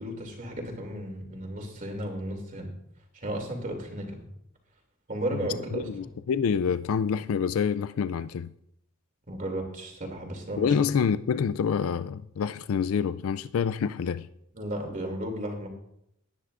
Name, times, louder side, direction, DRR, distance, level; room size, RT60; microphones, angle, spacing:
voice 1, 0.0-2.7 3.1-4.2 5.1-5.9 9.3-10.7 14.5-15.7, right 1 dB, 40° right, 2.7 m, -34 dB
voice 2, 5.3-8.5 10.6-14.3, left 6 dB, 75° left, 0.4 m, -27 dB
19.0 x 9.8 x 2.5 m
head